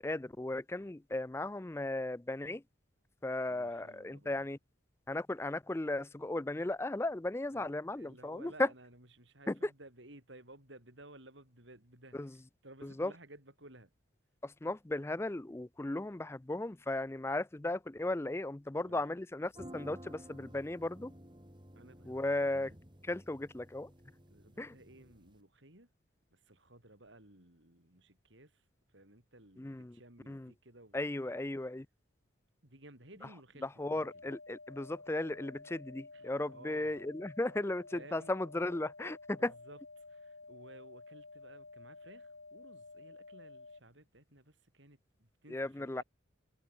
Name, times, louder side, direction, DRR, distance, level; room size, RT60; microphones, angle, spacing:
voice 1, 0.0-2.6 3.2-4.6 5.1-8.7 9.5-9.7 12.1-12.4 12.8-13.1 14.4-21.1 22.1-22.7 23.1-23.9 24.6-24.7 29.6-30.0 30.3-30.5 30.9-31.9 33.6-39.5 45.5-46.0, left 2 dB, 15° left, 0.4 m, -36 dB
voice 2, 3.5-4.5 7.5-13.9 18.8-19.1 21.7-22.7 24.3-25.9 26.3-28.6 28.9-31.1 32.6-34.2 36.1-36.9 37.9-38.3 39.4-39.8 40.1-46.0, right 1 dB, 65° right, 7.1 m, -57 dB
sound 1, 19.5-25.4, equal, 25° right, 5.8 m, -53 dB
sound 2, 33.8-43.8, left 3 dB, 75° left, 2.8 m, -52 dB
head